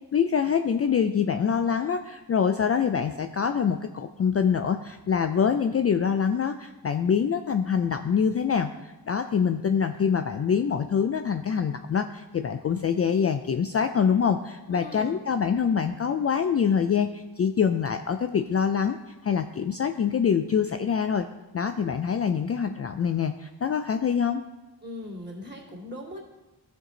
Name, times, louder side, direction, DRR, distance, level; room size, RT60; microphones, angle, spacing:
voice 1, 0.1-19.0 19.2-21.3 21.5-24.4, left 7 dB, 40° left, 8 dB, 0.4 m, -25 dB
voice 2, 14.7-15.2 24.8-26.2, left 1 dB, 25° right, -3 dB, 2.4 m, -39 dB
13.0 x 4.6 x 3.9 m, 1.1 s
cardioid pair, 65°, 40 cm